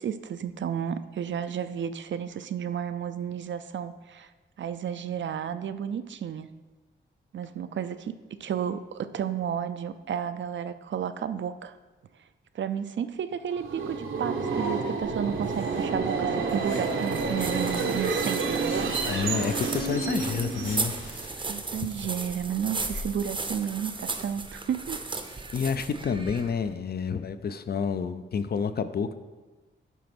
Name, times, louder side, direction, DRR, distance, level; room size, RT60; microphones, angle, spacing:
voice 1, 0.0-4.3 4.6-6.5 7.3-11.8 12.5-18.9 21.5-25.0, right 8 dB, 70° right, 11 dB, 0.5 m, -32 dB
Subway metro underground, 13.5-21.3, right 4 dB, 85° right, 1.0 m, -29 dB
sound 1, 15.0-23.6, left 2 dB, 70° left, 2.7 m, -46 dB
sound 2, 16.8-26.7, right 3 dB, 25° right, 0.6 m, -36 dB
voice 2, 19.1-20.9 21.3-21.6 25.5-29.1, left 6 dB, 50° left, 11 dB, 0.5 m, -29 dB
10.0 x 4.1 x 6.0 m, 1.2 s
wide cardioid pair, 160°, 20 cm